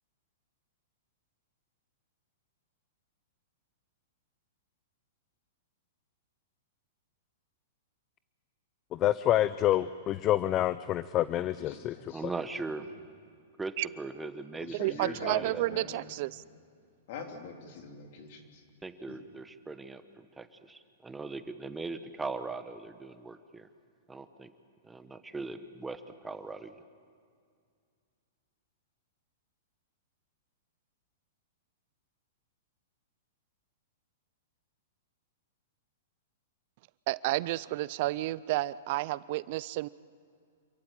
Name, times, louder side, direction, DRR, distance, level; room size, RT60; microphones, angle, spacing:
voice 1, 8.9-12.0 12.2-12.3, left 13 dB, 30° left, 15 dB, 0.5 m, -27 dB
voice 2, 11.6-12.3 12.9-13.0 14.6-16.1 17.1-18.6 19.1-19.2, left 5 dB, 55° left, 4 dB, 3.3 m, -44 dB
voice 3, 12.1-12.9 13.6-15.6 18.8-20.0 20.4-23.7 24.1-24.5 24.8-26.7, right 3 dB, 10° right, 10 dB, 1.0 m, -39 dB
voice 4, 14.7-16.4 37.1-39.9, right 18 dB, 50° right, 19 dB, 0.5 m, -31 dB
27.0 x 15.0 x 9.1 m, 2.2 s
hypercardioid pair, 135°, 0 cm